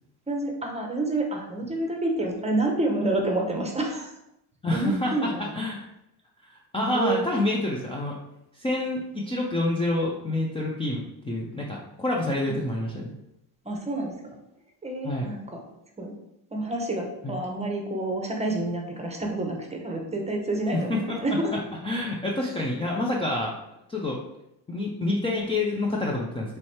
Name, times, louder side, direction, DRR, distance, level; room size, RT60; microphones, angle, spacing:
voice 1, 0.3-4.1 4.7-5.4 6.9-7.3 12.5-12.6 13.6-14.2 14.8-15.6 16.0-16.1 16.5-21.5 22.4-22.5, right 2 dB, 15° right, 1 dB, 0.8 m, -28 dB
voice 2, 4.6-5.3 5.6-5.8 6.4-8.2 8.5-13.1 15.0-15.3 17.2-17.4 20.7-21.2 21.8-23.5 23.9-24.2 24.7-26.6, left 2 dB, 15° left, -2 dB, 0.5 m, -27 dB
3.2 x 3.1 x 4.2 m, 0.84 s
cardioid pair, 105°, 41 cm